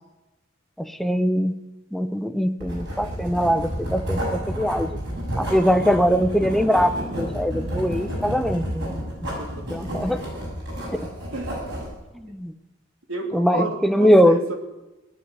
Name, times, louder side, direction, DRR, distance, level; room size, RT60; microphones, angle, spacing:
voice 1, 0.8-1.6 1.9-5.0 5.4-9.0 9.7-10.2 10.9-11.1 12.1-12.5 13.3-14.4, equal, ahead, 9 dB, 0.7 m, -21 dB
Writing, 2.6-11.9, equal, 60° right, 6.7 m, -30 dB
voice 2, 9.2-9.7 11.3-11.6 13.1-14.5, right 2 dB, 90° right, 4 dB, 2.5 m, -31 dB
19.0 x 7.3 x 9.6 m, 1.1 s
head